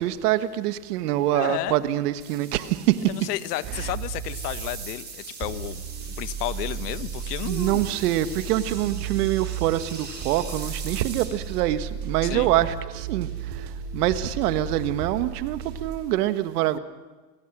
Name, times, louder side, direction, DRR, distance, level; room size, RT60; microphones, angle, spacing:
voice 1, 0.0-3.1 7.4-16.8, right 14 dB, 65° right, 11 dB, 1.5 m, -25 dB
voice 2, 1.3-1.8 3.1-5.8 6.2-7.9 12.2-12.5, left 16 dB, 70° left, 14 dB, 1.2 m, -32 dB
sound 1, 2.2-11.6, right 5 dB, 20° right, 4.4 m, -41 dB
sound 2, 3.6-5.0 5.4-16.0, right 7 dB, 40° right, 3.9 m, -34 dB
24.0 x 21.5 x 6.2 m, 1.3 s
supercardioid pair, 120°, 49 cm